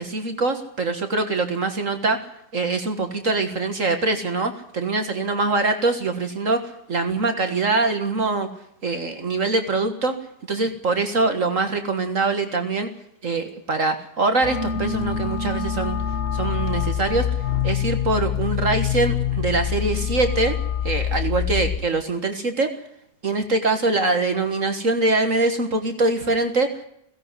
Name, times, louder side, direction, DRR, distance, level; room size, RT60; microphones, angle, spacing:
voice 1, 0.0-2.3 2.5-8.5 8.8-10.2 10.5-12.9 13.2-16.0 16.3-17.3 17.6-20.6 20.8-22.7 23.2-26.7, right 3 dB, 55° right, 7 dB, 2.0 m, -23 dB
sound 1, 14.4-21.8, left 8 dB, 45° left, 1.3 m, -25 dB
16.5 x 16.5 x 9.7 m, 0.74 s
omnidirectional pair, 1.7 m